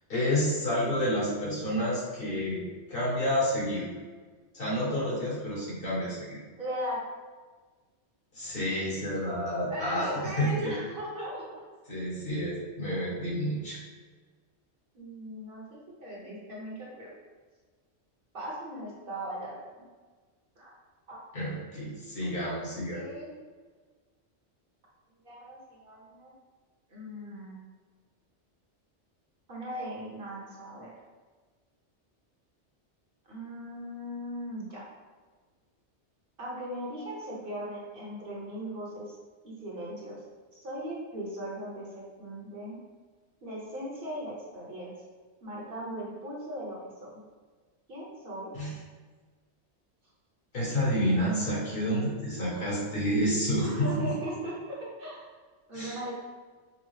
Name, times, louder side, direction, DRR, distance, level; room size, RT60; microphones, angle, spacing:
voice 1, 0.1-2.6 2.9-3.9 4.5-6.4 8.3-10.7 11.9-13.8 21.3-23.0 48.6-48.7 50.5-54.1 55.7-56.0, equal, 55° left, -6 dB, 1.3 m, -29 dB
voice 2, 6.6-7.1 9.7-11.4 14.9-17.1 18.3-19.7 20.6-20.7 21.1-21.2 22.6-23.3 25.2-26.3 26.9-27.6 29.5-30.9 33.3-34.8 36.4-39.2 39.4-40.2 40.5-42.8 43.4-44.9 45.4-47.2 47.9-48.5 52.5-52.7 53.6-54.5 55.0-55.2 55.7-56.1, equal, 55° right, -4 dB, 1.0 m, -38 dB
5.4 x 2.0 x 3.1 m, 1.4 s
omnidirectional pair, 1.2 m